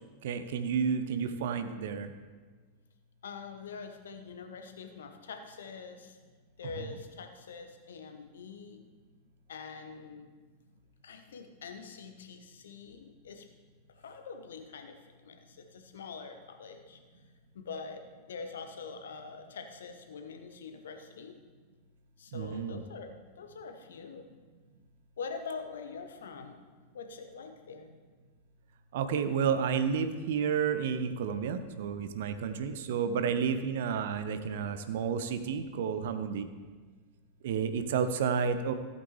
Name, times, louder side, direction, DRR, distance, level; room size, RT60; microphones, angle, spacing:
voice 1, 0.2-2.1 6.8-6.9 22.3-22.8 28.9-36.5 37.4-38.7, right 6 dB, 55° right, 10 dB, 0.7 m, -31 dB
voice 2, 3.2-6.1 6.6-8.8 9.5-10.2 11.0-13.4 14.0-14.9 15.2-15.3 15.7-17.0 17.5-18.0 18.3-21.3 22.2-24.2 25.2-26.5 26.9-27.9, left 5 dB, 65° left, 6 dB, 1.0 m, -44 dB
14.5 x 8.2 x 3.2 m, 1.4 s
figure-of-eight pair, 90°, 0 cm